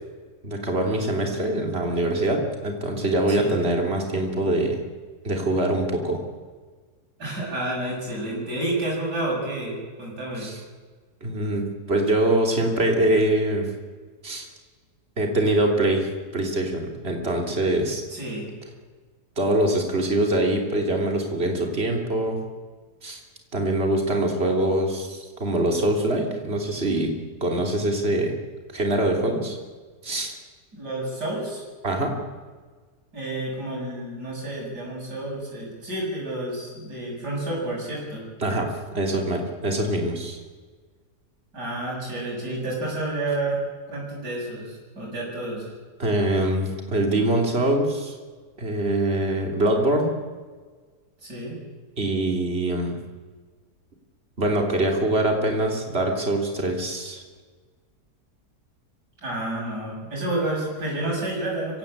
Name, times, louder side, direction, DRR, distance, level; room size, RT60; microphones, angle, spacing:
voice 1, 0.4-4.8 5.2-6.2 10.4-10.6 11.2-13.7 14.2-14.5 15.2-18.0 19.4-22.4 23.0-23.2 23.5-27.1 27.4-28.3 28.7-29.6 30.0-30.3 31.8-32.2 38.4-40.4 46.0-48.2 48.6-50.1 52.0-53.0 54.4-57.2, right 1 dB, 35° right, 2 dB, 3.5 m, -24 dB
voice 2, 7.2-10.5 18.1-18.5 30.7-31.6 33.1-38.2 41.5-43.6 43.9-45.7 51.2-51.6 59.2-61.8, right 1 dB, 85° right, -4 dB, 8.1 m, -30 dB
25.0 x 16.5 x 8.9 m, 1.5 s
omnidirectional pair, 1.7 m